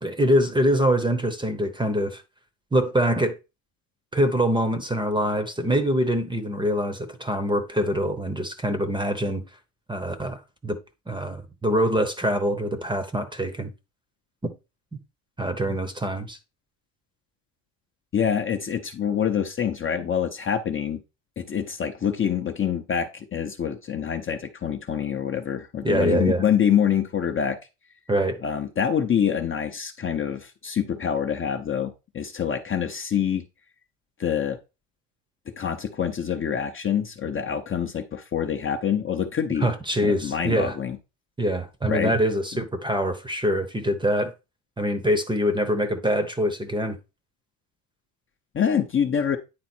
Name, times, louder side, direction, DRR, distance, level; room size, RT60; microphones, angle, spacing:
voice 1, 0.0-2.2 2.7-3.4 4.1-9.4 9.9-10.8 11.1-13.7 15.4-16.4 25.8-26.4 28.1-28.4 39.6-40.7 41.4-44.3 44.8-47.0, equal, 10° right, 0.9 m, -24 dB
voice 2, 18.1-21.0 21.4-27.6 28.4-33.4 34.2-34.6 35.5-39.7 40.0-41.0 41.9-42.1 48.5-49.4, left 8 dB, 25° left, 0.7 m, -26 dB
9.6 x 3.7 x 4.4 m
cardioid pair, 120°, 47 cm